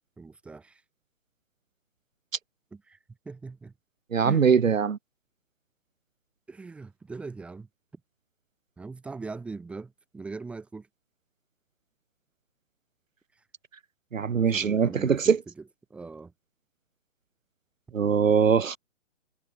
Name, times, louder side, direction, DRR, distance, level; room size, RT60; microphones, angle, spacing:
voice 1, 0.2-0.8 2.7-3.0 3.2-3.7 4.2-4.6 6.5-7.7 8.8-10.9 14.3-15.4 15.9-16.3, right 4 dB, 5° right, 2.5 m, -40 dB
voice 2, 4.1-5.0 14.1-15.4 17.9-18.8, right 6 dB, 90° right, 2.8 m, -22 dB
hypercardioid pair, 175°, 38 cm